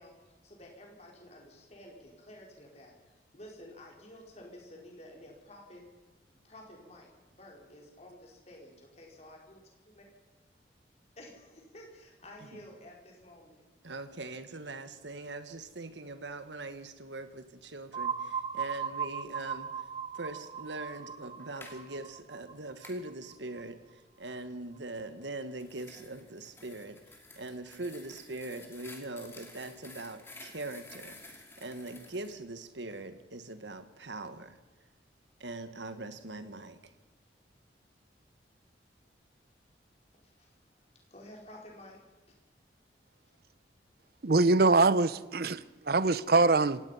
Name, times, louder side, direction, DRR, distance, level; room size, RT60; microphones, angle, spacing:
voice 1, 0.0-5.8 6.4-9.6 9.9-10.1 11.2-13.6 40.1-40.5 41.1-42.0 42.3-42.4, left 1 dB, 35° left, -1 dB, 4.6 m, -52 dB
voice 2, 13.8-19.7 20.1-27.0 27.4-34.6 35.4-36.9, right 2 dB, 80° right, 10 dB, 1.6 m, -42 dB
sound 1, 17.9-23.6, right 6 dB, 30° right, 0.9 m, -38 dB
sound 2, 21.4-21.8 22.8-23.0 25.2-32.3, left 2 dB, 15° left, 2.6 m, -52 dB
voice 3, 44.2-46.8, right 3 dB, 55° right, 17 dB, 0.7 m, -24 dB
26.0 x 17.5 x 5.7 m, 1.2 s
head